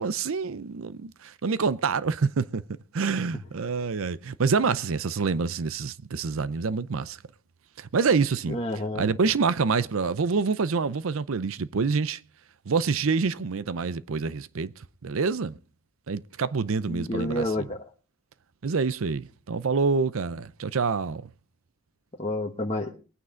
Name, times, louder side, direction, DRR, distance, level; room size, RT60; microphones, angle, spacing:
voice 1, 0.0-2.6 2.9-7.2 7.8-8.6 9.0-12.2 12.7-15.6 16.1-17.7 18.6-21.3, right 5 dB, 75° right, 0.6 m, -27 dB
voice 2, 8.5-9.1 16.9-17.8 22.2-22.9, left 1 dB, 30° left, 1.2 m, -29 dB
21.0 x 9.5 x 3.8 m
head